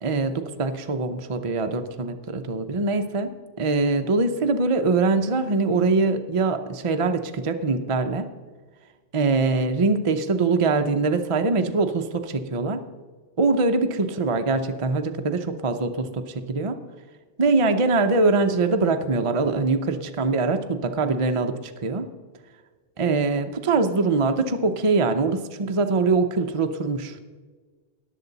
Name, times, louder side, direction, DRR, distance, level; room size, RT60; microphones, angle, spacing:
voice 1, 0.0-8.3 9.1-12.8 13.4-16.8 17.4-22.1 23.0-27.2, right 3 dB, 35° right, 6 dB, 0.6 m, -23 dB
18.5 x 6.8 x 4.0 m, 1.4 s
omnidirectional pair, 1.2 m